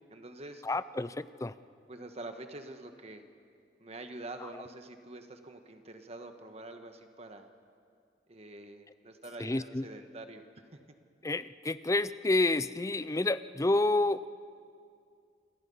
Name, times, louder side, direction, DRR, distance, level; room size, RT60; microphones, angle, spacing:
voice 1, 0.1-0.6 1.9-3.2 3.8-7.5 8.3-10.4 10.7-10.8, right 2 dB, 40° right, 6 dB, 1.4 m, -46 dB
voice 2, 0.6-1.5 9.4-9.8 11.2-14.3, left 2 dB, 20° left, 15 dB, 0.5 m, -29 dB
27.5 x 25.5 x 5.6 m, 2.3 s
head